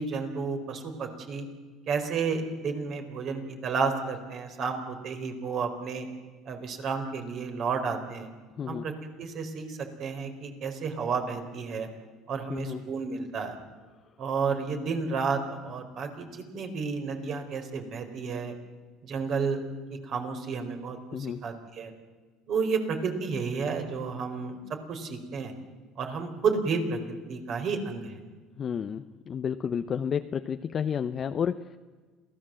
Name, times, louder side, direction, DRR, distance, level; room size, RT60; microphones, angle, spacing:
voice 1, 0.0-1.5 1.9-6.1 6.5-8.3 8.7-8.9 9.2-11.9 12.3-13.5 14.2-18.5 19.0-19.6 20.1-21.0 21.4-21.9 22.5-24.6 24.9-25.5 26.0-28.2, right 5 dB, 50° right, 5 dB, 4.3 m, -31 dB
voice 2, 8.6-8.9 12.5-12.9 21.1-21.4 28.6-31.8, left 7 dB, 35° left, 9 dB, 0.7 m, -31 dB
27.0 x 17.0 x 7.6 m, 1.4 s
supercardioid pair, 110°, 0 cm